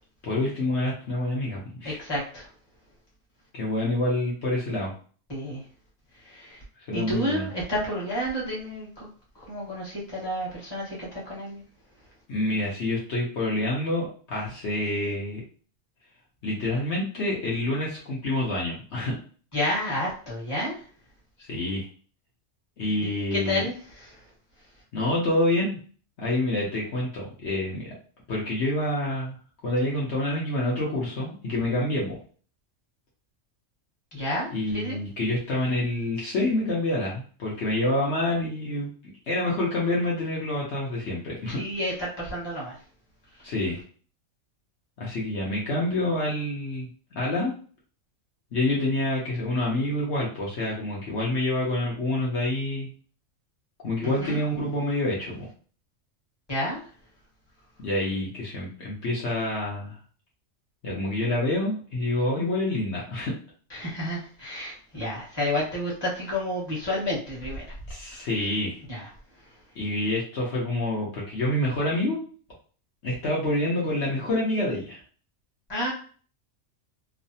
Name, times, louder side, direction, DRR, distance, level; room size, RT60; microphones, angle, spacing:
voice 1, 0.2-2.0 3.5-4.9 6.9-7.5 12.3-15.4 16.4-19.2 21.4-21.9 22.8-23.6 24.9-25.8 26.2-27.9 28.3-29.4 29.6-32.2 34.5-38.9 39.3-41.6 43.4-43.8 45.0-46.9 47.1-47.5 48.5-52.9 53.8-55.5 57.8-60.0 60.8-63.3 67.9-68.8 69.8-72.2 73.0-75.0, left 1 dB, 65° left, -5 dB, 1.0 m, -27 dB
voice 2, 1.8-2.5 5.3-5.6 6.1-6.6 6.9-9.1 9.3-11.6 19.5-20.8 23.0-24.3 34.1-35.0 41.6-42.8 43.3-43.5 54.0-54.4 56.5-56.8 63.7-67.7 68.1-68.3 68.9-69.1 69.4-69.5 75.7-75.9, left 1 dB, 20° left, -6 dB, 1.2 m, -31 dB
3.1 x 2.0 x 2.7 m, 0.42 s
omnidirectional pair, 1.3 m